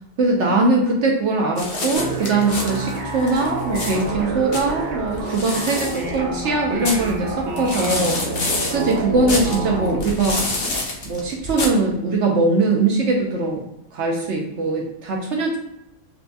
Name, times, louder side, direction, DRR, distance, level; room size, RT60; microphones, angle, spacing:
voice 1, 0.2-8.2 8.6-10.4 11.0-13.6 13.9-15.6, right 3 dB, 65° right, 0 dB, 0.7 m, -21 dB
sound 1, 1.6-11.7, left 2 dB, 50° left, 0.7 m, -29 dB
sound 2, 2.0-10.0, right 2 dB, 85° right, 1.4 m, -28 dB
4.5 x 2.1 x 2.5 m, 0.84 s
omnidirectional pair, 1.8 m